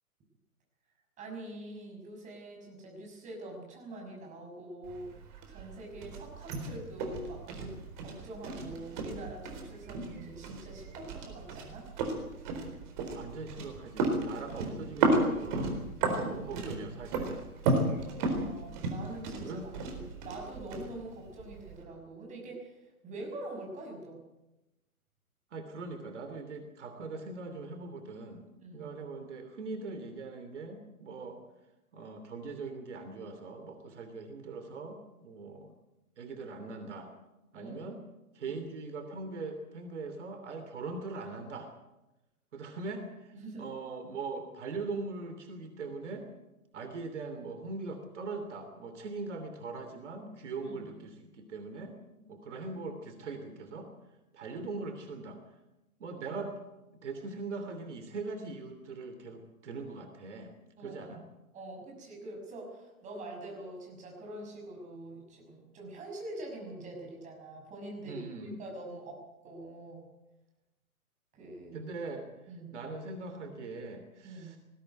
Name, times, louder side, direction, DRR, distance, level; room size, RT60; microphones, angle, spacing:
voice 1, 1.2-5.1 5.5-11.9 16.0-16.5 18.0-19.6 19.9-24.2 28.6-29.0 37.5-38.0 38.5-38.6 43.4-43.7 50.6-51.0 60.8-61.2 61.5-70.1 71.3-71.8 72.5-72.8 74.2-74.6, right 1 dB, 15° right, 0 dB, 6.1 m, -45 dB
sound 1, 4.8-21.8, right 3 dB, 35° right, 4.2 m, -34 dB
voice 2, 13.1-15.8 16.1-18.1 19.4-19.7 25.5-31.4 31.9-35.7 36.2-37.1 37.5-38.0 38.3-41.7 42.5-46.3 46.7-53.9 54.3-55.4 56.0-56.6 57.0-60.5 60.8-61.2 68.0-68.6 71.7-72.3 72.7-74.6, right 3 dB, 50° right, 7 dB, 3.1 m, -41 dB
20.0 x 15.5 x 9.2 m, 0.97 s
figure-of-eight pair, 130°, 44 cm